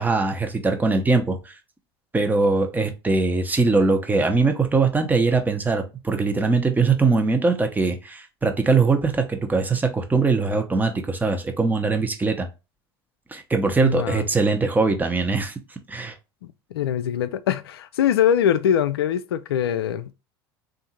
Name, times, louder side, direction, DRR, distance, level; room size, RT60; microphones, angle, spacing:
voice 1, 0.0-1.5 2.1-12.5 13.3-15.5 15.9-16.1, right 4 dB, 15° right, 0.9 m, -21 dB
voice 2, 13.8-14.3 16.7-20.1, left 9 dB, 75° left, 0.4 m, -22 dB
3.6 x 2.6 x 4.3 m
hypercardioid pair, 75°, 13 cm